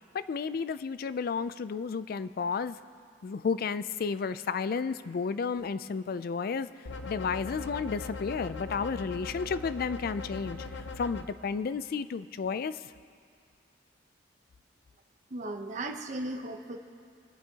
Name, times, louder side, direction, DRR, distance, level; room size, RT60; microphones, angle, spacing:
voice 1, 0.1-2.8 3.2-6.7 7.1-10.6 11.0-12.8, left 5 dB, 55° left, 14 dB, 0.4 m, -32 dB
sound 1, 6.9-11.2, left 3 dB, 80° left, 0.7 m, -40 dB
voice 2, 15.3-16.8, right 2 dB, 40° right, 5 dB, 0.8 m, -36 dB
27.0 x 9.6 x 2.9 m, 2.2 s
head